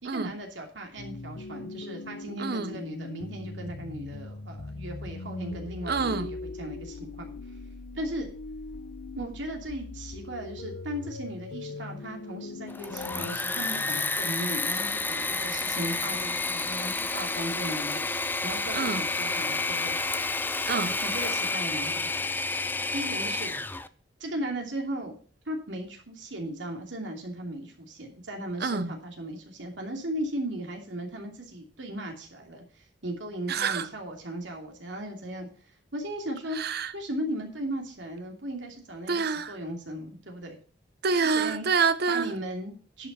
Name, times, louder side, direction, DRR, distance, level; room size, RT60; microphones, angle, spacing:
voice 1, 0.0-7.3 7.9-8.3 9.1-18.1 18.4-20.0 21.0-22.1 22.9-23.5 24.2-25.1 25.5-35.5 35.9-36.6 36.9-40.6 41.1-41.6 42.1-43.1, right 1 dB, 90° right, 2.7 m, -37 dB
sound 1, 1.0-13.4, left 3 dB, 90° left, 0.7 m, -40 dB
voice 2, 2.4-2.8 5.9-6.3 18.7-19.0 20.7-21.0 28.6-28.9 33.5-33.9 36.5-36.9 39.1-39.6 41.0-42.3, right 5 dB, 60° right, 0.7 m, -27 dB
Engine / Mechanisms, 12.7-23.9, left 3 dB, 10° left, 0.5 m, -30 dB
11.0 x 5.6 x 6.7 m
head